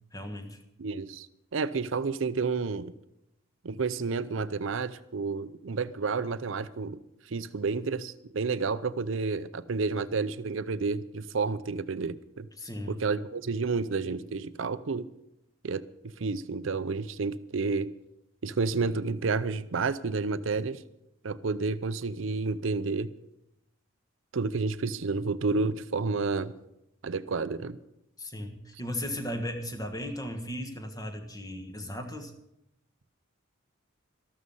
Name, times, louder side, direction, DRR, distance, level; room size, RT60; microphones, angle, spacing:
voice 1, 0.1-0.6 12.6-12.9 28.2-32.3, left 1 dB, 15° left, 5 dB, 1.5 m, -36 dB
voice 2, 0.8-1.3 1.5-2.9 3.6-7.0 7.3-12.5 12.9-15.1 15.6-15.8 16.2-17.9 18.4-20.8 21.2-23.1 24.3-26.5 27.0-27.8, right 4 dB, 70° right, 14 dB, 0.6 m, -30 dB
13.5 x 12.5 x 5.5 m, 0.84 s
head